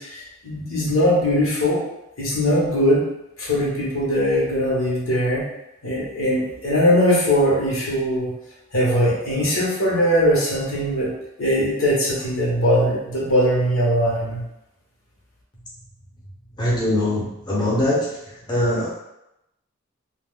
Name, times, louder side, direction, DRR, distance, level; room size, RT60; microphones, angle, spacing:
voice 1, 0.0-1.8 2.2-3.0 3.4-5.4 5.8-8.3 8.7-11.1 11.4-14.4, equal, 75° left, -6 dB, 1.0 m, -20 dB
voice 2, 16.6-18.1 18.5-19.0, left 1 dB, 20° left, -6 dB, 0.6 m, -22 dB
2.3 x 2.3 x 3.5 m, 0.88 s
head